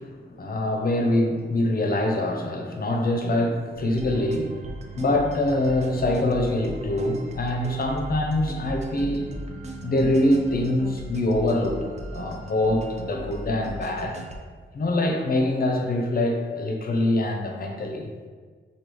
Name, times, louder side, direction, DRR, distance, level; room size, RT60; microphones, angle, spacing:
voice 1, 0.4-4.5 4.9-9.3 9.8-11.8 12.1-14.2 14.7-18.1, left 1 dB, 50° left, 2 dB, 0.5 m, -24 dB
sound 1, 3.7-14.4, right 1 dB, 35° right, 0.4 m, -37 dB
3.4 x 2.3 x 3.1 m, 1.5 s
wide cardioid pair, 95°, 20 cm